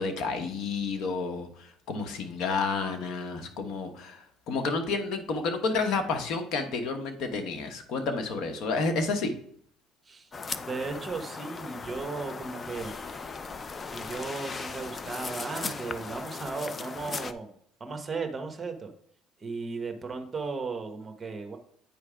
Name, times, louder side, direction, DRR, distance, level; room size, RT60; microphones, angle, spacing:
voice 1, 0.0-9.3, left 4 dB, 65° left, 6 dB, 1.0 m, -30 dB
sound 1, 10.3-17.3, left 4 dB, 30° left, 0.4 m, -38 dB
voice 2, 10.6-13.4 13.9-17.5 17.8-18.9 19.4-21.6, right 4 dB, 25° right, 6 dB, 1.0 m, -36 dB
8.6 x 3.3 x 4.9 m, 0.64 s
cardioid pair, 105°, 0 cm